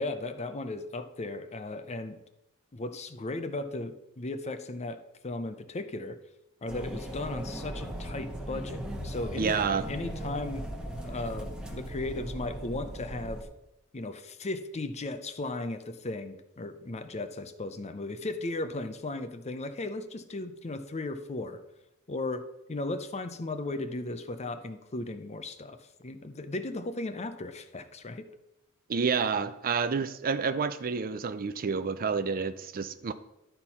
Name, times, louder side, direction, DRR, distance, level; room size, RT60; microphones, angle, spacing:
voice 1, 0.0-2.2 2.7-6.2 6.6-9.5 9.9-10.6 11.0-13.5 13.9-21.6 22.1-28.3, left 2 dB, 30° left, 10 dB, 0.6 m, -36 dB
sound 1, 6.7-13.4, equal, 5° right, 1.2 m, -38 dB
voice 2, 9.4-9.9 28.9-33.1, right 5 dB, 40° right, 12 dB, 0.5 m, -29 dB
11.5 x 4.5 x 5.5 m, 0.89 s
head